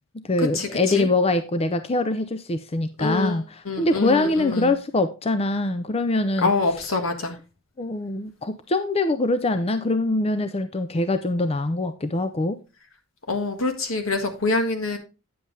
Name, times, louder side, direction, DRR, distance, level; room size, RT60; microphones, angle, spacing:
voice 1, 0.2-6.5 7.8-12.6, left 2 dB, 30° left, 0.5 m, -23 dB
voice 2, 3.0-4.7 6.4-7.4 13.3-15.0, left 3 dB, 75° left, 1.7 m, -25 dB
9.4 x 7.5 x 3.3 m
head